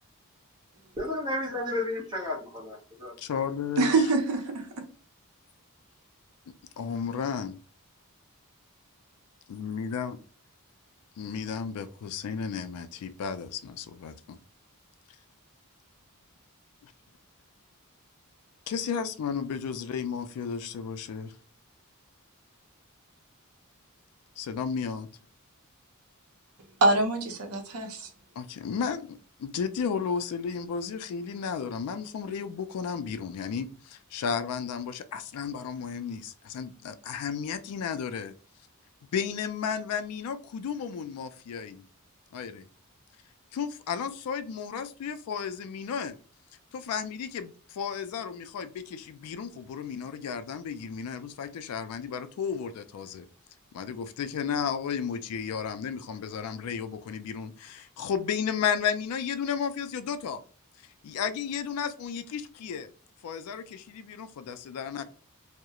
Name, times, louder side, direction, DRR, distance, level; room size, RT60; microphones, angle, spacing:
voice 1, 1.0-3.2, left 1 dB, 20° right, 0.8 m, -32 dB
voice 2, 3.2-3.9 6.8-7.6 9.5-10.2 11.2-14.4 16.8-16.9 18.7-21.3 24.4-25.1 28.4-38.3 39.1-41.9 42.3-42.6 43.5-46.2 46.7-53.3 53.7-60.4 61.0-62.9 63.2-65.0, left 6 dB, 80° left, 0.3 m, -33 dB
voice 3, 3.8-4.6 26.8-28.1, right 3 dB, 80° right, 0.6 m, -24 dB
2.3 x 2.0 x 2.8 m
head